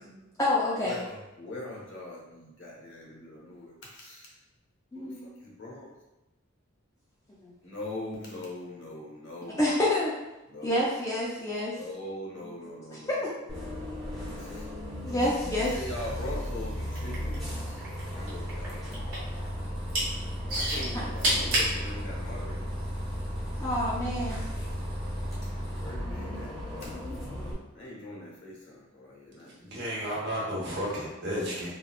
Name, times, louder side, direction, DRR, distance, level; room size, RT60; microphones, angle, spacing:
voice 1, 0.0-1.0 4.9-5.3 7.4-7.5 9.6-10.1 10.6-11.7 13.2-13.3 15.0-15.7 23.6-24.4, left 1 dB, 15° left, -6 dB, 0.4 m, -28 dB
voice 2, 0.8-4.4 4.9-5.9 7.6-9.6 10.5-10.9 11.7-13.3 14.4-14.7 15.5-17.4 18.1-18.8 20.5-22.7 25.7-26.9 27.7-29.9, left 1 dB, 60° left, -2 dB, 0.8 m, -42 dB
Bus, 13.5-27.5, equal, ahead, 0.8 m, -35 dB
sound 1, 16.9-18.0 18.3-19.3 19.7-20.1 20.5-21.7 22.4-22.5, right 1 dB, 75° right, 1.2 m, -27 dB
voice 3, 29.6-31.7, equal, 55° right, -6 dB, 1.1 m, -32 dB
3.5 x 2.2 x 2.3 m, 1.0 s
head